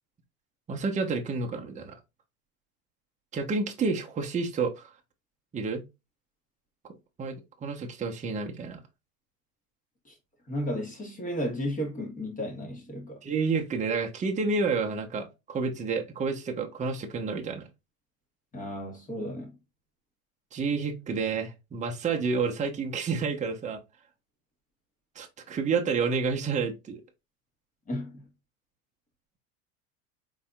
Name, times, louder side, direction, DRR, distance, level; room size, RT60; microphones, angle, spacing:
voice 1, 0.7-2.0 3.3-4.9 5.5-5.8 7.2-8.8 13.2-17.6 20.5-23.8 25.2-27.0, right 4 dB, 15° right, 0.8 m, -29 dB
voice 2, 10.5-13.2 18.5-19.5 27.9-28.3, equal, 20° left, 1.5 m, -34 dB
4.1 x 4.1 x 2.3 m
supercardioid pair, 120°, 42 cm